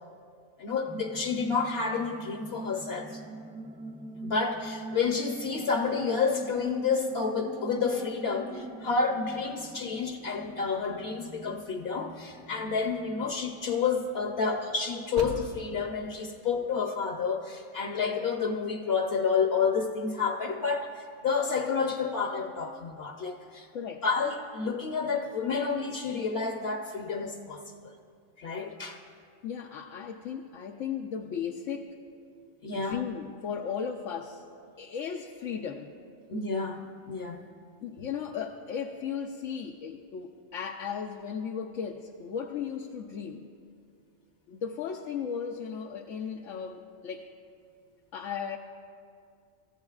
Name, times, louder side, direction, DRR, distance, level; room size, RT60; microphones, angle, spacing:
voice 1, 0.6-3.2 4.2-23.7 24.0-27.9 28.4-29.0 32.6-33.0 36.3-37.5, left 5 dB, 55° left, 3 dB, 1.0 m, -30 dB
sound 1, 0.8-13.4, right 1 dB, 5° right, 0.5 m, -43 dB
sound 2, 9.3-16.3, right 2 dB, 60° right, 1.2 m, -48 dB
voice 2, 23.7-24.0 29.4-31.9 32.7-34.4 34.8-35.9 37.8-43.5 44.5-47.3 48.1-48.6, left 7 dB, 80° left, 1 dB, 1.0 m, -36 dB
27.0 x 14.5 x 2.4 m, 2.3 s
omnidirectional pair, 1.3 m